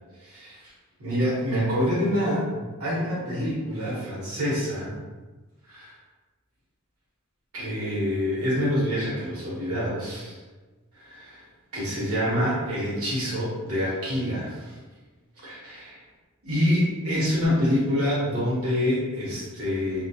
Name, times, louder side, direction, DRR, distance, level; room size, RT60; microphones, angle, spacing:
voice 1, 0.2-0.7 1.0-5.0 5.7-5.9 7.5-10.4 10.9-11.4 11.7-14.7 15.4-16.0 16.4-20.0, equal, 85° right, -7 dB, 1.1 m, -26 dB
2.3 x 2.3 x 2.7 m, 1.3 s
head